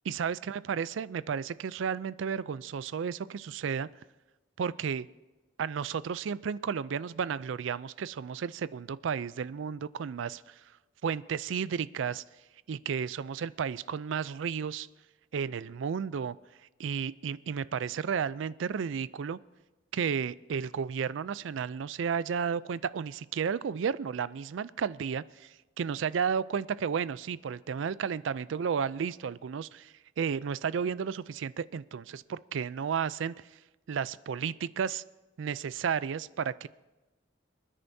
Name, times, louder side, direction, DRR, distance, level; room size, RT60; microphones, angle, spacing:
voice 1, 0.1-3.9 4.6-5.1 5.6-10.5 11.0-12.2 12.7-14.9 15.3-16.4 16.8-19.4 19.9-33.3 33.9-35.0 35.4-36.7, right 7 dB, 80° right, 18 dB, 0.4 m, -33 dB
26.5 x 9.9 x 2.7 m, 1.1 s
head